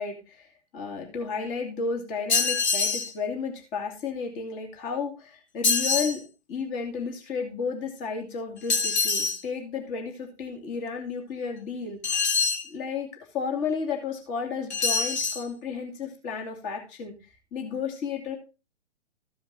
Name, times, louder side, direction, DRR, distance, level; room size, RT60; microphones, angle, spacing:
voice 1, 0.0-6.2 6.5-12.0 12.6-13.1 13.3-17.2 17.5-18.4, left 5 dB, 25° left, 3 dB, 2.2 m, -32 dB
sound 1, 2.3-3.1 5.6-6.2 8.7-9.4 12.0-12.7 14.7-15.4, left 4 dB, 65° left, 1.5 m, -25 dB
14.0 x 5.0 x 4.0 m, 0.30 s
figure-of-eight pair, 125°, 35 cm